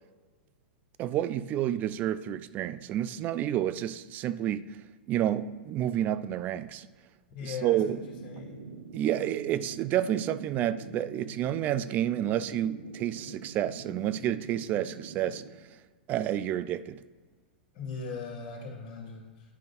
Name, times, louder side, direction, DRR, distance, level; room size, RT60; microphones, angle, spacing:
voice 1, 1.0-4.7 5.1-6.9 7.4-8.0 8.9-15.4 16.1-17.0, right 11 dB, 30° right, 0.3 m, -29 dB
voice 2, 7.3-8.0 8.2-8.6 17.7-19.5, left 4 dB, 50° left, 1.8 m, -39 dB
sound 1, 7.7-15.5, right 4 dB, 75° right, 0.8 m, -45 dB
11.0 x 5.2 x 2.6 m
figure-of-eight pair, 100°, 5 cm